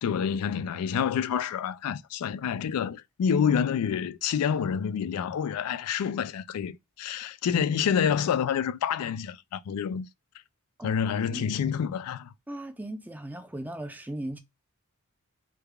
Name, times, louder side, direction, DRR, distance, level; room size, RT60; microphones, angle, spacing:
voice 1, 0.0-10.1 10.8-12.3, left 7 dB, 75° left, 0.3 m, -28 dB
voice 2, 12.5-14.4, right 1 dB, 10° right, 0.5 m, -37 dB
3.3 x 2.3 x 3.3 m
head